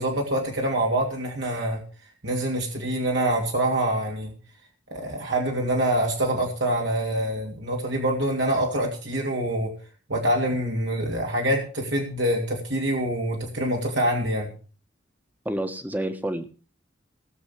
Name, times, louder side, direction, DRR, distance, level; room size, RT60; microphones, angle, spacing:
voice 1, 0.0-1.8 2.2-4.3 4.9-9.7 10.1-14.5, right 1 dB, 70° right, -1 dB, 2.9 m, -25 dB
voice 2, 15.4-16.5, right 1 dB, 10° right, 8 dB, 1.3 m, -29 dB
18.5 x 7.1 x 6.1 m, 0.38 s
head